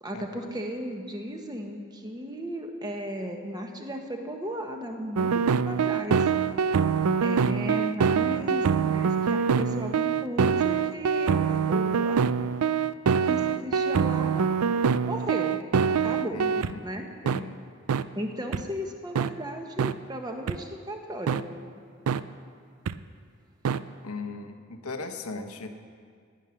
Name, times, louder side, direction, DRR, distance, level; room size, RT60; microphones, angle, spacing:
voice 1, 0.0-6.3 7.2-12.4 13.2-14.5 15.0-15.6 15.9-16.4 16.8-17.1 18.1-21.4, equal, 20° right, 3 dB, 1.1 m, -35 dB
sound 1, 5.2-16.7 17.3-17.4 17.9-18.0 18.5-18.6 19.2-19.3 19.8-19.9 20.5-20.6 21.3-21.4 22.1-22.2 22.9-23.0 23.6-23.8, right 6 dB, 90° right, 0.4 m, -24 dB
voice 2, 16.3-16.8 17.2-17.6 24.0-25.7, left 3 dB, 90° left, 6 dB, 1.1 m, -37 dB
15.5 x 9.8 x 5.9 m, 2.1 s
head